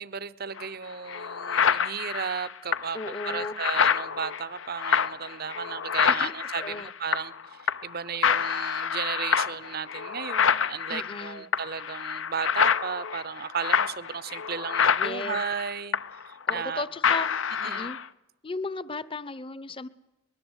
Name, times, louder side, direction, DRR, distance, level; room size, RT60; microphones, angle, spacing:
voice 1, 0.0-16.8 17.6-17.9, right 6 dB, 50° right, 0.8 m, -35 dB
sound 1, 0.6-0.7 1.1-7.4 7.7-8.0 8.2-16.8 17.0-18.0, left 7 dB, 80° left, 0.8 m, -27 dB
voice 2, 2.9-3.5 6.1-6.9 10.9-11.5 15.0-15.4 16.5-17.3 17.6-18.0 18.4-19.9, left 3 dB, 25° left, 0.8 m, -35 dB
23.0 x 20.5 x 8.2 m
head